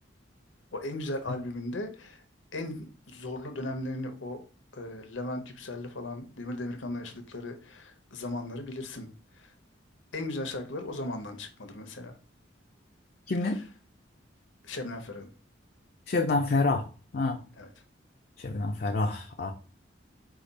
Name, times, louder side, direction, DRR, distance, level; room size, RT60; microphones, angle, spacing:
voice 1, 0.7-2.2 2.5-4.4 4.7-9.1 9.3-9.5 10.1-12.2 13.4-13.6 14.6-15.3 17.6-17.7, left 2 dB, 85° left, 7 dB, 0.9 m, -37 dB
voice 2, 13.3-13.6 16.1-16.9 17.1-17.4 18.4-19.5, left 3 dB, 50° left, 3 dB, 0.5 m, -27 dB
5.0 x 2.4 x 4.0 m, 0.38 s
head